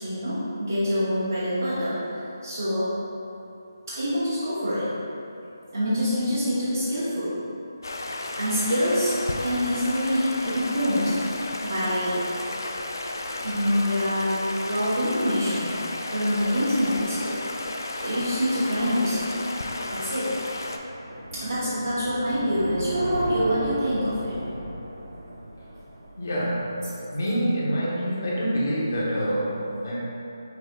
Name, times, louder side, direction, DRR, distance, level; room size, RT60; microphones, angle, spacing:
voice 1, 0.0-2.9 3.9-4.9 5.7-7.3 8.3-11.1 11.6-12.2 13.3-14.4 14.7-15.7 16.1-17.4 18.0-19.4 19.9-20.3 21.3-24.4, equal, 55° right, -12 dB, 1.1 m, -25 dB
Stream, 7.8-20.8, left 2 dB, 70° left, 0.4 m, -33 dB
sound 1, 19.5-26.7, right 1 dB, 80° right, 0.7 m, -36 dB
voice 2, 26.2-26.8 27.1-30.0, equal, 40° left, -7 dB, 1.0 m, -26 dB
6.2 x 3.3 x 2.3 m, 2.9 s
hypercardioid pair, 180°, 2 cm